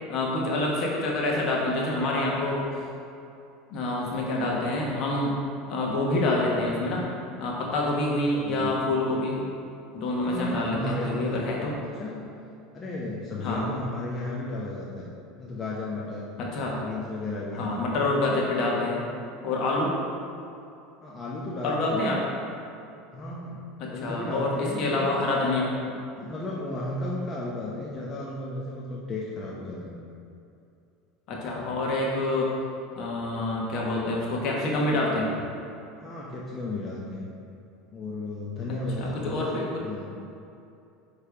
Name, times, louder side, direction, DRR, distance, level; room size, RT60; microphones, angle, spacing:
voice 1, 0.1-2.6 3.7-5.3 5.7-7.0 7.4-9.4 9.9-11.7 13.4-13.7 16.4-16.8 17.5-19.0 19.4-19.9 21.6-22.2 23.8-25.7 31.3-32.5 32.9-35.3 39.0-39.8, left 2 dB, 55° left, -3 dB, 1.4 m, -27 dB
voice 2, 8.2-8.7 10.3-12.2 12.7-16.3 16.8-17.8 21.0-22.2 23.1-25.1 25.9-30.0 35.9-37.3 37.9-40.1, left 2 dB, 30° left, -5 dB, 0.9 m, -34 dB
9.2 x 3.4 x 3.5 m, 2.6 s
hypercardioid pair, 85°, 0 cm